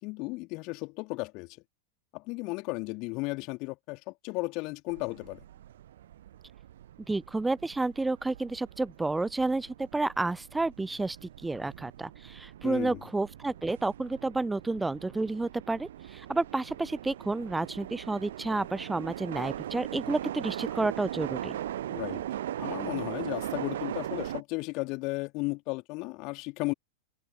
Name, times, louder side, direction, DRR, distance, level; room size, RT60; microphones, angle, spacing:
voice 1, 0.0-1.5 2.1-5.4 12.6-13.0 21.9-22.2 22.6-26.7, left 26 dB, 40° left, 3.3 m, -35 dB
sound 1, 4.9-24.4, right 12 dB, 60° right, 0.9 m, -40 dB
voice 2, 7.1-21.6, right 2 dB, 10° right, 0.4 m, -30 dB
figure-of-eight pair, 90°, 0 cm